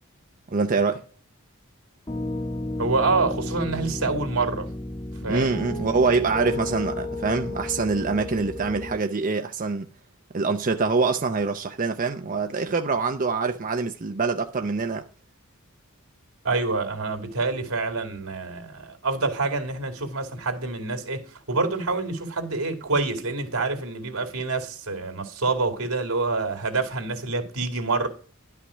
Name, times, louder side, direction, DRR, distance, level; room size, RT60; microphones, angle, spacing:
voice 1, 0.5-1.0 5.3-9.9 10.3-15.0, right 4 dB, 40° right, 0.6 m, -25 dB
Piano, 2.1-9.0, left 1 dB, 20° left, 0.9 m, -32 dB
voice 2, 2.8-4.7 5.2-5.6 16.4-28.1, right 3 dB, 85° right, 2.5 m, -27 dB
11.5 x 5.8 x 5.1 m
head